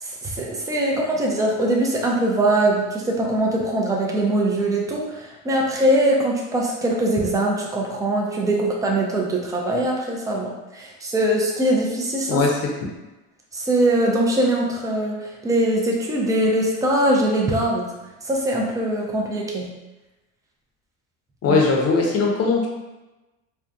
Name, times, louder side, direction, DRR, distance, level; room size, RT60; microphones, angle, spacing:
voice 1, 0.0-12.4 13.5-17.9 18.2-19.7 21.5-21.6, right 1 dB, 10° right, -2 dB, 0.4 m, -22 dB
voice 2, 12.3-12.7 21.4-22.7, left 4 dB, 40° left, -1 dB, 0.7 m, -19 dB
2.5 x 2.3 x 2.3 m, 1.1 s
supercardioid pair, 85°, 38 cm